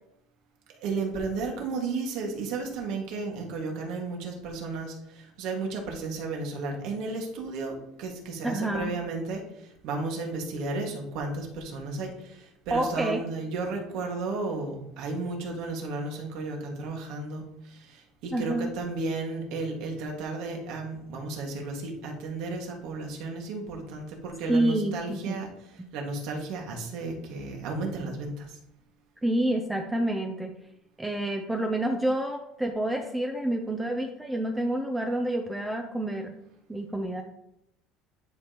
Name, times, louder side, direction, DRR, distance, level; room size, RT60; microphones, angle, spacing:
voice 1, 0.7-25.5 25.9-28.6, right 3 dB, 65° right, 1 dB, 1.9 m, -33 dB
voice 2, 8.4-9.0 12.7-13.2 18.3-18.7 24.5-25.4 28.0-28.1 29.2-30.5 31.0-36.3 36.7-37.2, right 1 dB, 10° right, 3 dB, 0.6 m, -28 dB
10.5 x 5.2 x 3.0 m, 0.83 s
cardioid pair, 150°, 0 cm